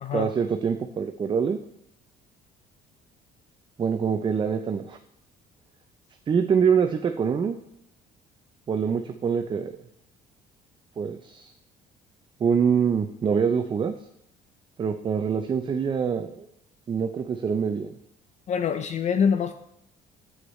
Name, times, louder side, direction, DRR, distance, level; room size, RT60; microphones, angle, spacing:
voice 1, 0.1-1.6 3.8-5.0 6.3-7.6 8.7-9.7 11.0-11.5 12.4-13.9 14.8-16.5 16.9-17.9, right 6 dB, 30° right, 7 dB, 0.4 m, -25 dB
voice 2, 18.5-19.5, left 7 dB, 45° left, 10 dB, 0.4 m, -24 dB
9.7 x 8.0 x 3.1 m, 0.78 s
cardioid pair, 110°, 17 cm